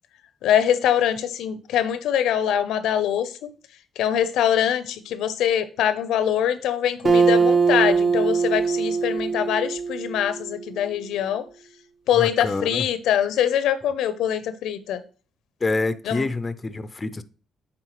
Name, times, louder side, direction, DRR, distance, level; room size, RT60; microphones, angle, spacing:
voice 1, 0.4-3.5 4.0-11.5 12.1-15.0 16.1-16.3, left 10 dB, 85° left, 0.5 m, -23 dB
Acoustic guitar, 7.0-10.6, right 5 dB, 40° right, 0.9 m, -21 dB
voice 2, 12.2-12.9 15.6-17.2, left 3 dB, 25° left, 0.4 m, -27 dB
8.9 x 3.5 x 3.0 m
cardioid pair, 105°, 0 cm